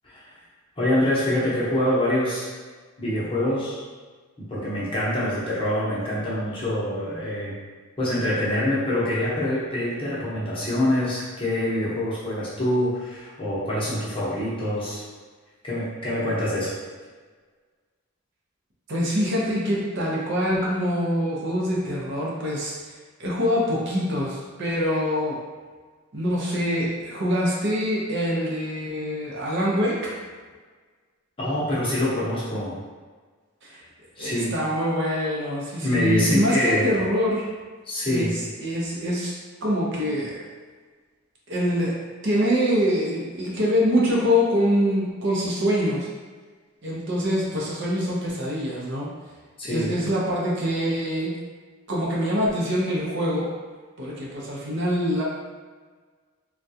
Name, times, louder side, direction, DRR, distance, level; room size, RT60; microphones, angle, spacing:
voice 1, 0.8-2.5 3.0-3.8 4.4-7.5 8.0-15.0 15.6-16.7 31.4-32.8 34.2-34.5 35.8-36.9 37.9-38.3 49.6-49.9, left 1 dB, 25° left, -8 dB, 0.8 m, -25 dB
voice 2, 18.9-22.9 23.2-25.4 26.1-30.1 33.6-33.8 34.2-37.5 38.1-39.3 39.6-40.4 41.5-41.9 42.2-46.1 46.8-49.1 49.6-51.3 51.9-53.5 54.0-55.2, equal, 55° right, -5 dB, 0.6 m, -24 dB
3.5 x 2.3 x 2.7 m, 1.5 s
head